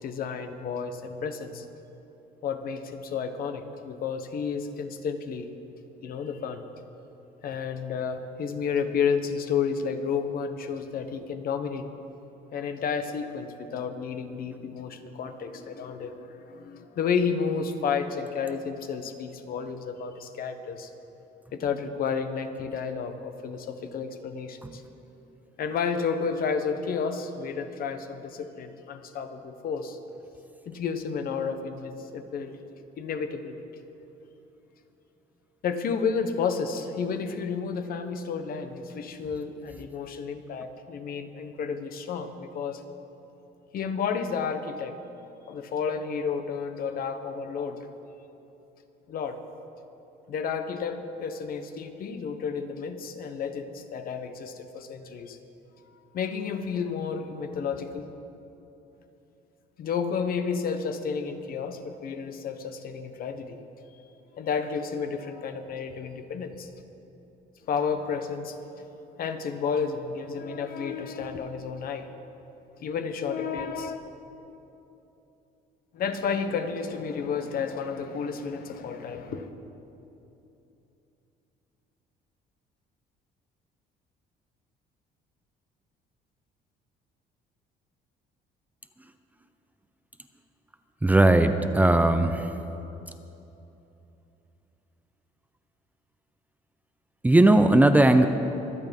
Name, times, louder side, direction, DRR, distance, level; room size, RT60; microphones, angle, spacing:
voice 1, 0.0-1.6 2.4-5.5 6.0-6.6 7.4-11.9 12.5-20.9 21.5-24.8 25.6-30.0 30.7-32.6 33.0-33.6 35.6-42.8 43.7-45.0 45.5-47.9 49.1-49.4 50.3-55.4 56.1-58.0 59.8-63.6 64.4-66.7 67.6-68.6 69.2-72.1 72.8-74.0 75.9-79.5, left 6 dB, 60° left, 8 dB, 1.2 m, -31 dB
voice 2, 91.0-92.5 97.2-98.3, right 1 dB, 10° right, 8 dB, 0.6 m, -18 dB
24.5 x 8.5 x 5.4 m, 2.9 s
cardioid pair, 110°, 17 cm